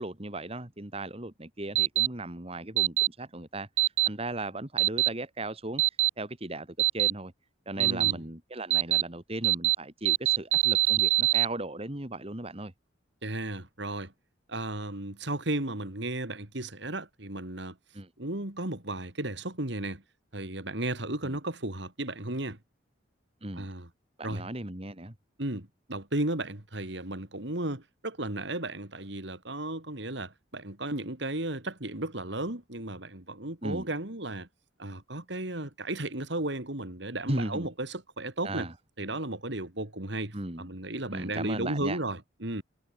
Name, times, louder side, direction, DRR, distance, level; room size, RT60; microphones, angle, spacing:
voice 1, 0.0-3.7 4.1-5.8 6.2-7.3 7.7-12.7 17.9-18.1 21.2-21.4 23.4-23.7 24.2-25.1 33.6-33.9 37.3-37.7 38.4-38.7 40.3-40.7 41.1-42.0, right 2 dB, 30° right, 2.2 m, -37 dB
sound 1, 1.8-2.1 2.8-3.1 3.8-4.1 4.8-5.1 5.8-6.1 6.8-7.1 7.8-8.1 8.7-9.0 9.4-9.8 10.1-11.5, right 18 dB, 85° right, 0.9 m, -23 dB
voice 2, 7.8-8.2 13.2-14.1 14.5-17.8 18.2-20.0 20.3-22.6 23.5-23.9 24.2-24.5 25.4-34.5 34.8-38.7 39.0-42.6, right 1 dB, 60° right, 3.1 m, -34 dB
head